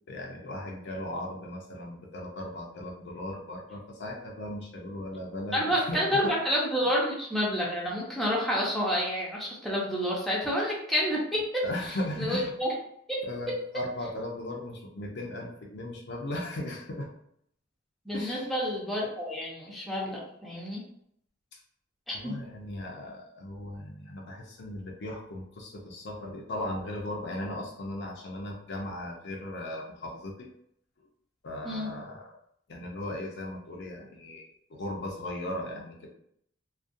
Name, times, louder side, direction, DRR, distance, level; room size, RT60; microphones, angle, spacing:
voice 1, 0.1-6.3 6.8-6.9 11.6-12.5 13.2-17.1 18.1-18.5 21.5-21.6 22.1-30.5 31.4-32.4 32.7-36.1, left 1 dB, 65° left, 1 dB, 0.5 m, -37 dB
voice 2, 5.5-11.6 12.2-12.7 13.1-13.2 18.1-20.8 22.1-22.3 31.6-31.9, equal, ahead, -5 dB, 0.6 m, -29 dB
2.4 x 2.2 x 2.5 m, 0.70 s
head